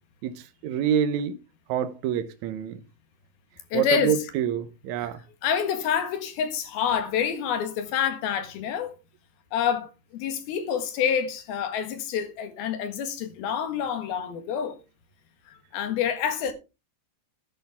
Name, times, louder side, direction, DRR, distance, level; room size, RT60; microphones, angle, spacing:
voice 1, 0.2-1.4 1.7-2.8 3.7-5.2, right 9 dB, 80° right, 1.7 m, -27 dB
voice 2, 3.7-4.2 5.0-5.1 5.4-8.9 9.5-14.8 15.5-16.5, left 8 dB, 75° left, 3.4 m, -27 dB
10.5 x 10.5 x 3.5 m
omnidirectional pair, 4.4 m